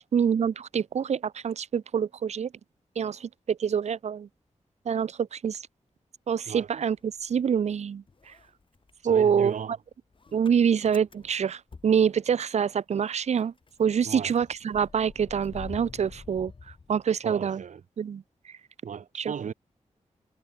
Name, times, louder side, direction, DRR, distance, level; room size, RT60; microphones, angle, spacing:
voice 1, 0.0-2.5 3.0-4.3 4.9-5.6 6.3-8.0 9.0-9.5 10.3-13.5 13.8-16.5 16.9-17.6 18.0-18.2 19.2-19.3, right 7 dB, 60° right, 0.5 m, -26 dB
Motor vehicle (road) / Engine starting, 6.6-7.8 8.1-12.7 13.0-13.1 13.4-17.5, left 4 dB, 40° left, 6.2 m, -48 dB
voice 2, 9.0-9.7 14.0-14.3 17.2-17.8 18.8-19.5, right 7 dB, 80° right, 1.0 m, -36 dB
wide cardioid pair, 150°, 13 cm